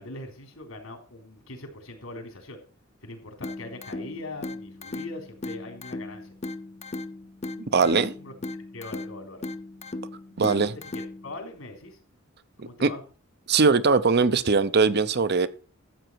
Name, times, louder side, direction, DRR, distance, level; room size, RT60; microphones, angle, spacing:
voice 1, 0.0-2.6 3.0-6.3 7.8-8.3 8.7-9.4 10.4-12.0 12.6-13.0, left 2 dB, 80° left, 3 dB, 3.6 m, -41 dB
sound 1, 3.4-11.4, left 2 dB, 30° left, 0.7 m, -37 dB
voice 2, 7.7-8.1 10.4-10.7 12.6-12.9 13.5-15.5, right 4 dB, 50° right, 14 dB, 0.7 m, -21 dB
13.0 x 8.0 x 4.6 m, 0.37 s
head